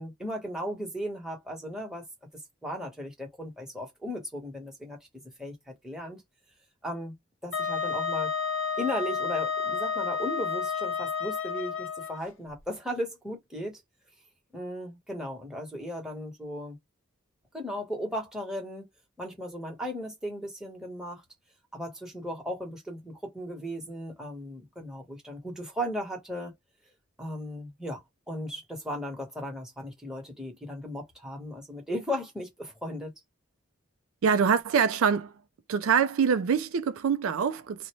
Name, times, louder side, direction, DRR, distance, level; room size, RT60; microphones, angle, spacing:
voice 1, 0.0-2.0 2.3-6.2 6.8-7.2 7.4-8.3 8.8-13.8 14.5-16.8 17.5-18.9 19.2-21.2 21.7-26.5 27.2-28.0 28.3-33.1, equal, 5° right, 1.0 m, -36 dB
Wind instrument woodwind instrument, 7.5-12.2, left 5 dB, 60° left, 0.6 m, -31 dB
voice 2, 34.2-35.3 35.7-37.9, right 6 dB, 75° right, 0.4 m, -24 dB
2.6 x 2.1 x 2.9 m
head